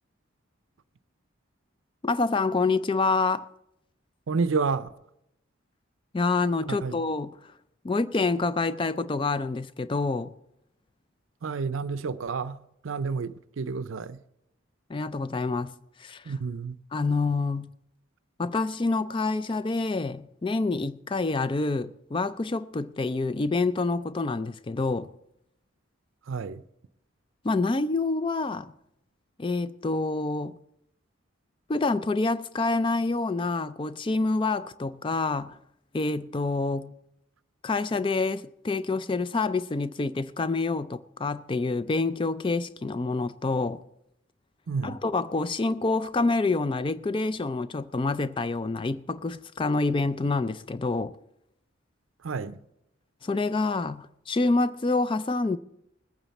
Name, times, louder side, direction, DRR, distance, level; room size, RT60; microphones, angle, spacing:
voice 1, 2.0-3.5 6.1-7.4 7.8-10.3 14.9-15.7 16.0-16.3 16.9-17.7 18.4-25.1 27.4-28.7 29.4-30.6 31.7-35.6 35.9-36.9 37.6-43.8 44.8-51.1 53.2-55.6, left 3 dB, 25° left, 0.4 m, -27 dB
voice 2, 4.3-4.9 6.7-6.9 11.4-12.6 12.8-14.2 16.3-16.8 26.3-26.6 44.7-45.0 52.2-52.6, right 4 dB, 75° right, 0.5 m, -30 dB
20.5 x 9.1 x 4.1 m
head